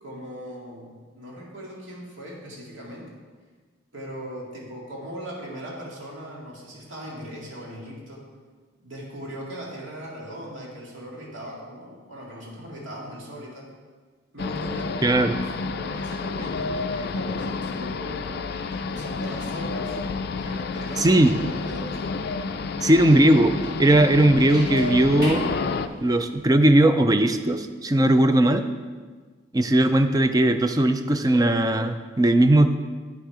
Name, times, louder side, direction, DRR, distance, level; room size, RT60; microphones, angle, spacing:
voice 1, 0.0-3.1 3.9-8.2 8.8-13.7 14.3-20.0 20.4-22.0, equal, 75° right, -4 dB, 2.2 m, -39 dB
sound 1, 14.4-25.9, left 4 dB, 50° left, 0.3 m, -30 dB
voice 2, 15.0-15.3 21.0-21.4 22.8-25.4 26.0-28.7 29.5-32.7, right 1 dB, 20° right, 9 dB, 0.4 m, -18 dB
sound 2, 18.5-26.4, equal, 45° right, 1.7 m, -41 dB
9.1 x 6.4 x 4.8 m, 1.5 s
head